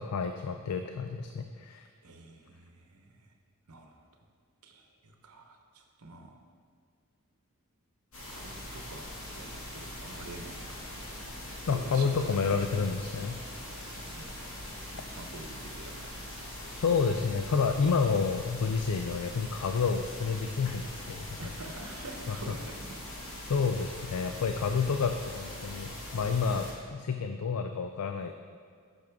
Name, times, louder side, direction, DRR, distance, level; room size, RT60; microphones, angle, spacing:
voice 1, 0.0-1.9 11.7-13.4 16.8-21.4 22.3-22.4 23.4-28.3, left 5 dB, 85° left, 6 dB, 0.4 m, -29 dB
voice 2, 2.0-3.3 3.7-4.0 4.6-6.4 8.3-9.1 9.4-11.0 11.7-12.6 13.7-14.5 14.9-16.3 21.4-23.0 26.4-26.6, right 2 dB, 85° right, 3 dB, 1.0 m, -47 dB
sound 1, 8.1-26.7, left 1 dB, 65° left, 2.2 m, -42 dB
10.5 x 6.2 x 3.5 m, 2.1 s
head